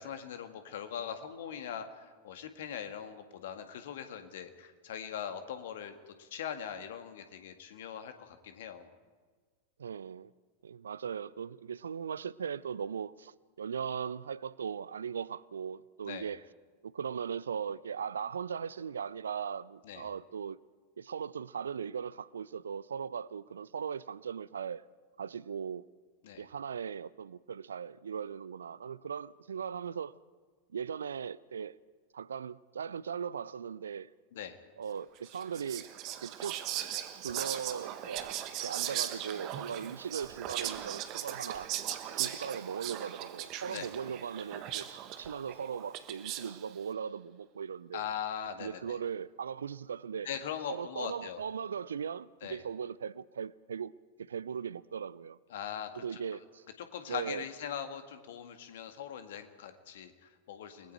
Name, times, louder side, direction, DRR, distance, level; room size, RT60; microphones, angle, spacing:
voice 1, 0.0-8.9 16.1-16.3 19.8-20.1 26.2-26.5 34.3-34.6 43.7-43.9 47.9-49.0 50.2-51.4 52.4-52.6 55.5-56.2 56.8-60.9, left 8 dB, 55° left, 1.9 m, -41 dB
voice 2, 9.8-10.3 10.6-16.4 16.8-20.6 21.0-24.8 25.2-25.8 26.4-30.2 30.7-31.8 32.1-34.1 34.8-35.9 36.2-36.6 37.2-38.4 38.6-41.7 42.1-48.1 48.6-50.3 50.7-53.9 54.2-55.4 55.9-56.6 57.1-57.4, right 7 dB, 70° right, 0.5 m, -39 dB
Whispering, 35.2-46.7, right 12 dB, 40° right, 1.4 m, -39 dB
30.0 x 20.0 x 4.6 m
figure-of-eight pair, 90°, 0 cm